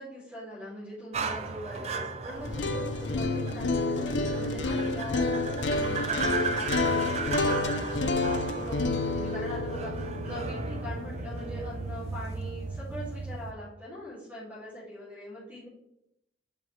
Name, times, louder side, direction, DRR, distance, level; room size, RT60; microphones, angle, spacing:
voice 1, 0.0-15.7, equal, 10° right, -10 dB, 2.5 m, -42 dB
sound 1, 1.1-13.5, right 4 dB, 35° right, 0.5 m, -35 dB
sound 2, 2.4-12.4, left 3 dB, 85° left, 0.6 m, -30 dB
7.1 x 5.7 x 3.2 m, 0.82 s
head